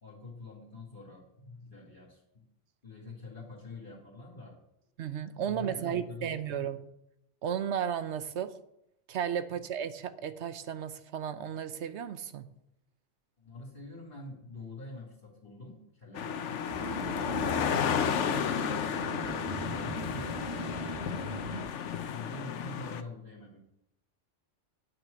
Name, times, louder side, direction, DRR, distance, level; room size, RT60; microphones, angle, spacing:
voice 1, 0.0-2.5 2.8-4.6 5.4-6.7 9.6-9.7 13.4-16.7 19.2-20.4 20.9-23.6, left 2 dB, 45° left, -3 dB, 2.6 m, -46 dB
voice 2, 5.0-6.8 7.4-8.5 9.1-12.5, right 8 dB, 70° right, 12 dB, 1.0 m, -34 dB
sound 1, 16.1-23.0, left 7 dB, 75° left, 1.0 m, -32 dB
sound 2, 16.7-21.7, right 2 dB, 25° right, 1.0 m, -39 dB
9.3 x 6.2 x 7.8 m, 0.81 s
omnidirectional pair, 1.2 m